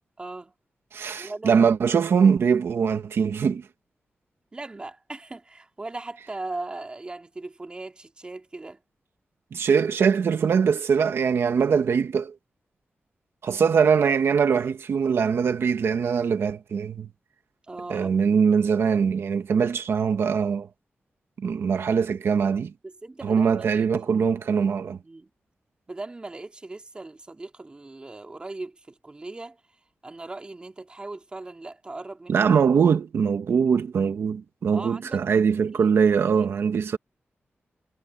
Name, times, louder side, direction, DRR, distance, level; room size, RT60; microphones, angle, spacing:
voice 1, 0.2-0.5 1.2-1.7 4.5-8.8 17.7-18.2 22.8-24.6 25.0-25.3 25.9-29.6 30.0-32.5 34.7-35.2 35.7-35.9, right 2 dB, 25° right, 2.8 m, -39 dB
voice 2, 0.9-3.7 9.5-12.3 13.4-17.1 17.9-20.7 21.4-22.7 23.2-25.0 32.3-37.0, right 6 dB, 80° right, 1.5 m, -22 dB
wide cardioid pair, 150°, 4 cm